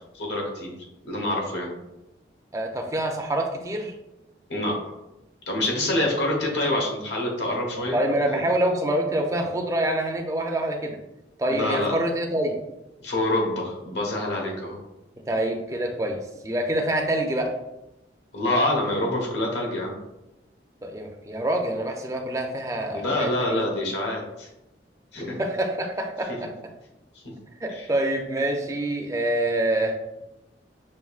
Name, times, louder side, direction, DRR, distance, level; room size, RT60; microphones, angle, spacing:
voice 1, 0.1-0.7 1.0-1.7 4.5-4.8 5.5-8.0 8.3-8.4 11.5-11.9 13.0-14.8 18.3-20.0 22.9-24.5 25.1-25.4 27.7-27.9, left 1 dB, 85° left, -1 dB, 1.1 m, -26 dB
voice 2, 2.5-3.9 7.9-11.0 11.4-12.6 15.3-17.5 20.8-23.6 25.4-26.5 27.6-29.9, right 1 dB, 20° right, 3 dB, 0.4 m, -26 dB
5.5 x 2.6 x 2.4 m, 0.92 s
head